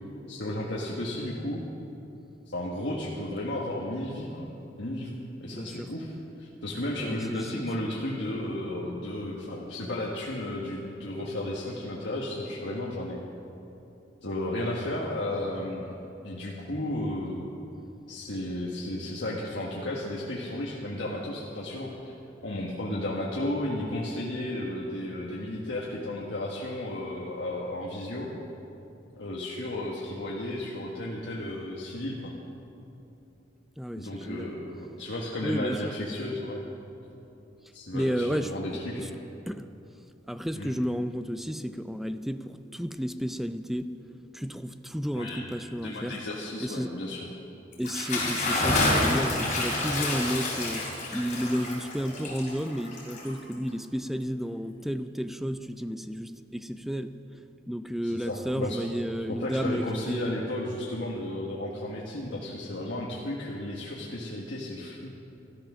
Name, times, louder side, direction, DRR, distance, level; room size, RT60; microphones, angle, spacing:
voice 1, 0.3-1.6 2.5-4.5 4.8-6.1 6.4-13.2 14.2-15.9 16.2-17.4 18.1-22.1 22.4-28.3 29.2-32.3 34.0-36.6 37.7-39.1 40.5-40.7 45.1-45.5 45.8-47.3 58.0-65.1, left 1 dB, 65° left, -4 dB, 1.5 m, -33 dB
voice 2, 5.5-5.9 7.0-7.7 33.8-34.6 35.4-35.9 37.9-39.1 39.5-39.7 40.3-43.9 44.3-46.2 46.6-46.9 47.8-57.2 57.7-60.4, equal, ahead, 10 dB, 0.4 m, -32 dB
Bathtub (filling or washing) / Splash splatter, 47.7-53.7, left 2 dB, 40° left, 3.9 m, -28 dB
13.5 x 12.5 x 6.2 m, 2.9 s
head